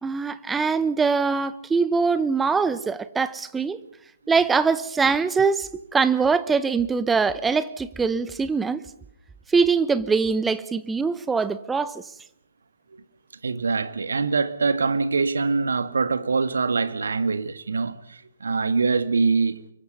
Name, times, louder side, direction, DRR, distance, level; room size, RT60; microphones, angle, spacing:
voice 1, 0.0-3.8 4.3-8.8 9.5-12.0, right 5 dB, 10° right, 0.9 m, -23 dB
voice 2, 13.4-19.6, right 4 dB, 65° right, 1.8 m, -24 dB
24.5 x 22.5 x 5.5 m
figure-of-eight pair, 130°, 0 cm